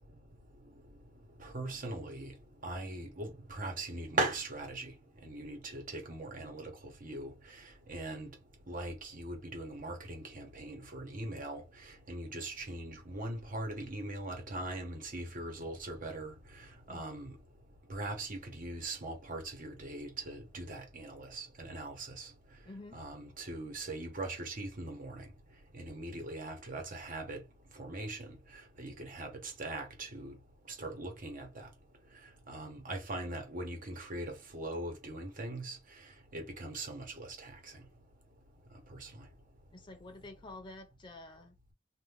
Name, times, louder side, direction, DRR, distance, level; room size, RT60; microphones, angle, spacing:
voice 1, 0.0-39.7, right 2 dB, 45° right, 1.2 m, -41 dB
voice 2, 22.6-23.0 39.7-41.7, left 2 dB, 25° left, 0.5 m, -49 dB
2.8 x 2.5 x 3.4 m
head